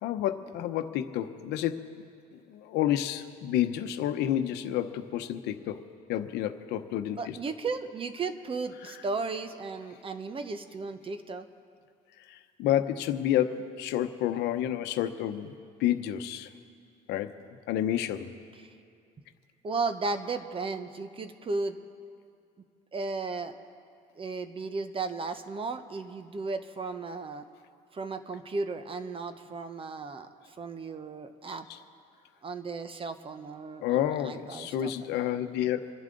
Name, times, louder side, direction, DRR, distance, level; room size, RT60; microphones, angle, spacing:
voice 1, 0.0-1.9 2.3-7.4 8.8-8.9 12.3-15.5 15.8-16.5 17.1-17.3 17.7-18.3 31.7-31.8 33.8-35.9, left 11 dB, 85° left, 9 dB, 0.8 m, -30 dB
voice 2, 7.2-11.4 18.6-18.7 19.6-21.8 22.9-23.5 24.2-27.4 27.9-30.3 30.6-31.7 32.4-35.1, right 4 dB, 30° right, 9 dB, 1.0 m, -35 dB
27.5 x 11.0 x 3.9 m, 2.4 s
cardioid pair, 110°, 17 cm